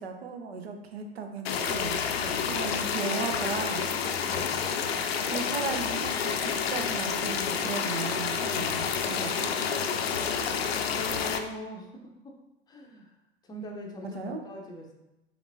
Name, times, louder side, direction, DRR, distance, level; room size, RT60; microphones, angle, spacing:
voice 1, 0.0-2.0 2.5-3.9 5.2-9.5 14.1-14.4, right 4 dB, 70° right, 5 dB, 0.7 m, -36 dB
sound 1, 1.4-11.4, left 6 dB, 65° left, 0.5 m, -29 dB
voice 2, 2.1-2.6 4.2-4.6 10.9-12.4 12.7-13.2 13.4-14.9, left 1 dB, 10° left, 1 dB, 0.6 m, -41 dB
5.8 x 3.2 x 2.6 m, 0.95 s
figure-of-eight pair, 85°, 33 cm